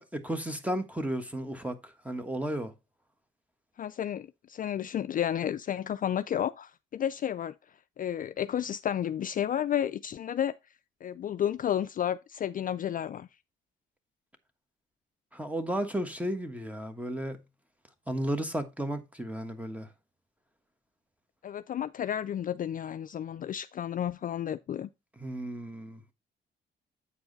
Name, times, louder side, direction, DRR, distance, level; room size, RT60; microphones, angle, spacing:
voice 1, 0.0-2.7 15.3-17.4 18.1-19.9 25.2-26.0, right 1 dB, 5° right, 1.3 m, -34 dB
voice 2, 3.8-7.5 8.0-10.5 11.0-13.3 21.4-24.9, left 10 dB, 45° left, 0.4 m, -32 dB
8.5 x 4.8 x 3.9 m
cardioid pair, 90°, 20 cm